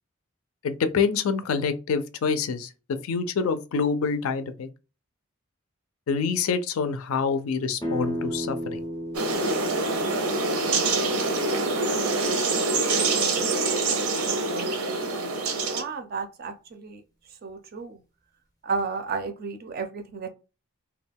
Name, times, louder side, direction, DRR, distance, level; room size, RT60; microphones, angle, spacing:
voice 1, 0.6-2.7 3.0-4.7 6.1-8.8, left 5 dB, 75° left, 0.4 m, -26 dB
sound 1, 7.8-13.4, equal, 15° left, 0.5 m, -36 dB
sound 2, 9.1-15.8, right 3 dB, 85° right, 0.6 m, -25 dB
voice 2, 15.6-17.0 17.4-18.0 18.6-20.3, right 4 dB, 45° right, 0.4 m, -32 dB
2.3 x 2.2 x 3.4 m
head